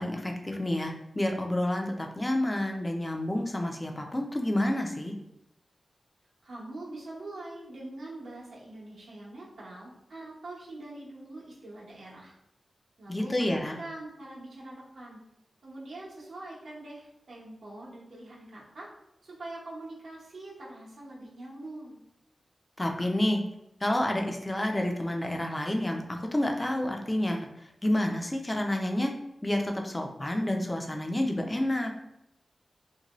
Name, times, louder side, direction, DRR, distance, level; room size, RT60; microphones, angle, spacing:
voice 1, 0.0-5.1 13.1-13.7 22.8-23.4 23.8-27.5 27.8-29.1 29.4-31.9, left 1 dB, 20° left, 2 dB, 0.4 m, -29 dB
voice 2, 6.4-12.3 13.0-15.2 15.6-18.9 19.2-22.0, right 2 dB, 85° right, -5 dB, 0.8 m, -43 dB
2.7 x 2.1 x 2.9 m, 0.85 s
wide cardioid pair, 95°, 0 cm